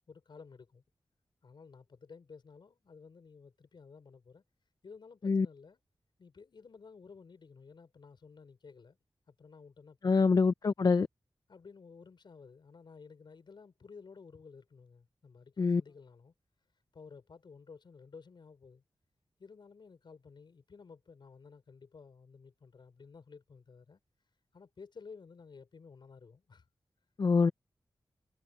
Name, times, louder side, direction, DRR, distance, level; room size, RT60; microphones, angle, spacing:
voice 1, 0.1-0.8 1.4-4.4 4.8-5.8 6.2-9.0 9.3-10.4 11.5-16.3 16.9-18.8 19.4-24.0 24.5-26.7, left 5 dB, 70° left, 5.3 m, -54 dB
voice 2, 10.0-11.1 15.6-15.8 27.2-27.5, left 4 dB, 50° left, 0.5 m, -25 dB
wide cardioid pair, 105°, 8 cm